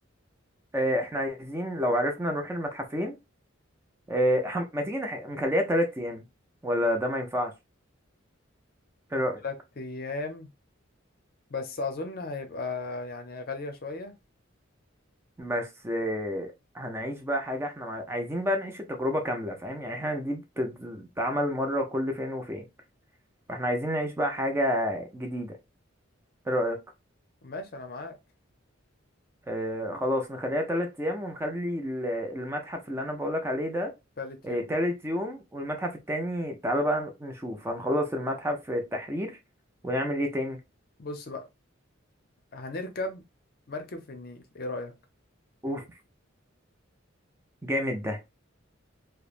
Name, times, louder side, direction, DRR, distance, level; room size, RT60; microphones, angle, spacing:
voice 1, 0.7-3.2 4.1-6.2 6.6-7.5 9.1-9.4 15.4-22.6 23.5-25.6 26.5-26.8 29.5-33.9 34.4-39.4 39.8-40.6 45.6-45.8 47.6-48.2, equal, 15° right, 0.4 m, -29 dB
voice 2, 9.4-10.5 11.5-14.1 27.4-28.1 34.2-34.7 41.0-41.5 42.5-43.2 43.7-44.9, left 3 dB, 50° left, 0.6 m, -36 dB
3.0 x 2.0 x 2.4 m
head